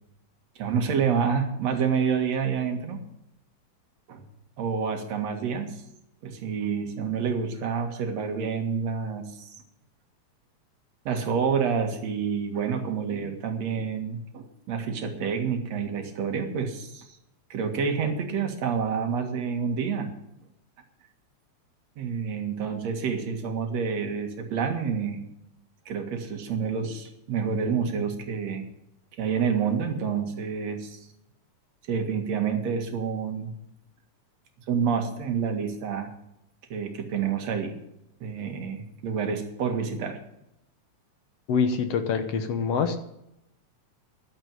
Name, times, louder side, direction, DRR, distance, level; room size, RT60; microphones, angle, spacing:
voice 1, 0.6-3.0 4.1-4.2 4.6-5.8 6.2-9.5 11.1-17.1 17.5-20.1 22.0-25.3 25.9-28.6 29.2-31.0 31.9-33.5 34.7-36.1 36.7-37.8 38.2-40.2, right 6 dB, 65° right, 5 dB, 3.0 m, -28 dB
voice 2, 41.5-43.0, left 6 dB, 65° left, 8 dB, 1.9 m, -25 dB
12.0 x 9.0 x 9.1 m, 0.84 s
omnidirectional pair, 3.3 m